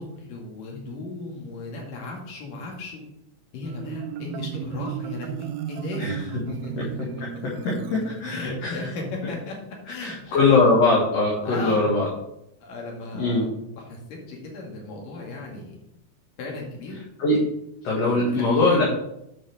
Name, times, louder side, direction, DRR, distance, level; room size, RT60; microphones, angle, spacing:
voice 1, 0.0-3.0 3.5-6.0 6.5-6.9 8.3-9.6 9.9-10.7 11.4-11.9 12.6-14.0 14.3-15.8 16.4-17.0 18.1-18.7, left 2 dB, 80° left, -1 dB, 3.9 m, -36 dB
Marimba xylophone, 3.6-8.8, right 9 dB, 75° right, 1.8 m, -35 dB
voice 2, 7.6-8.8 10.0-12.1 13.1-13.4 17.2-17.4 17.8-18.8, left 3 dB, 55° left, -6 dB, 3.0 m, -21 dB
10.0 x 6.0 x 4.9 m, 0.82 s
omnidirectional pair, 3.8 m